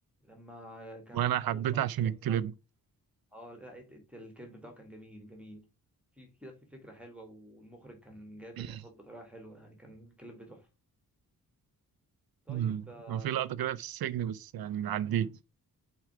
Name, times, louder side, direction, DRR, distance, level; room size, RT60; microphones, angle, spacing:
voice 1, 0.2-2.4 3.3-5.6 6.1-10.7 12.4-13.4, equal, 5° right, 1.6 m, -50 dB
voice 2, 1.1-2.5 8.6-8.8 12.5-15.3, right 10 dB, 70° right, 0.5 m, -31 dB
4.8 x 4.5 x 4.5 m
wide cardioid pair, 130°, 37 cm